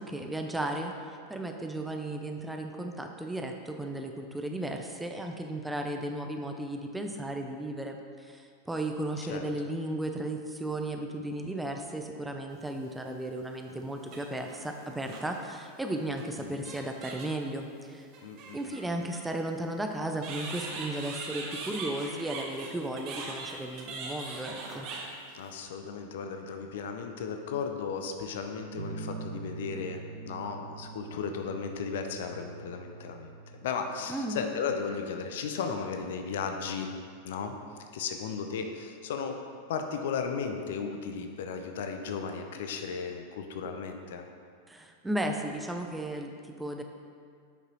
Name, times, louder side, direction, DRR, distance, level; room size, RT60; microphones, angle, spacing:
voice 1, 0.0-18.1 18.5-24.9 34.1-34.4 44.7-46.8, right 1 dB, 5° right, 3 dB, 0.5 m, -35 dB
sound 1, 12.9-13.0 14.0-15.4 16.2-16.3 16.6-17.4 18.1-19.2 20.2-25.5, right 3 dB, 40° right, 1.0 m, -41 dB
voice 2, 18.2-18.6 18.9-19.0 25.3-33.3 33.6-36.9 37.2-37.6 37.9-39.4 39.7-44.3, left 6 dB, 55° left, 5 dB, 0.6 m, -35 dB
sound 2, 28.8-37.8 39.3-39.8, right 4 dB, 70° right, 0.5 m, -46 dB
9.2 x 5.5 x 3.0 m, 2.2 s
figure-of-eight pair, 90°, 0 cm